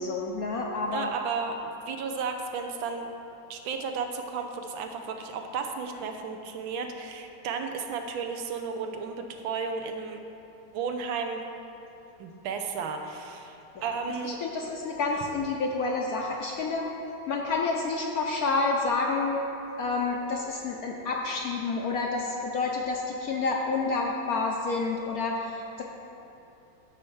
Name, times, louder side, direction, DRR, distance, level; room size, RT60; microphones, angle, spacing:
voice 1, 0.0-1.1 13.8-13.9 14.2-16.9 17.3-19.4 19.8-25.8, left 3 dB, 65° left, 0 dB, 0.9 m, -29 dB
voice 2, 0.9-1.6 1.9-3.1 3.5-10.2 10.7-11.4 12.2-14.4, right 5 dB, 80° right, 5 dB, 1.5 m, -33 dB
9.9 x 4.2 x 7.1 m, 2.9 s
omnidirectional pair, 2.1 m